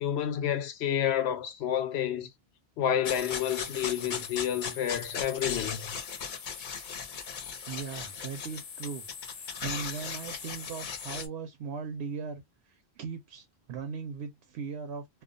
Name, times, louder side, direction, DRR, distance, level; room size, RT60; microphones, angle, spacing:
voice 1, 0.0-2.3 2.8-5.9, left 10 dB, 90° left, 0.8 m, -29 dB
sound 1, 3.0-11.3, left 6 dB, 55° left, 0.7 m, -38 dB
voice 2, 7.7-12.4 12.7-15.2, right 5 dB, 85° right, 0.8 m, -39 dB
2.3 x 2.2 x 2.4 m
omnidirectional pair, 1.1 m